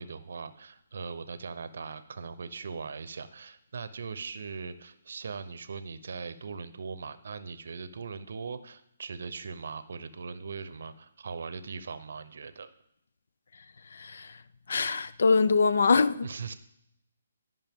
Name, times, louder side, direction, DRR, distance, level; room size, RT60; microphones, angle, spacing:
voice 1, 0.0-12.7 16.2-16.5, right 5 dB, 65° right, 0.7 m, -40 dB
voice 2, 14.0-14.3 14.7-16.3, left 4 dB, 70° left, 0.4 m, -23 dB
11.5 x 5.4 x 3.6 m
hypercardioid pair, 155°, 0 cm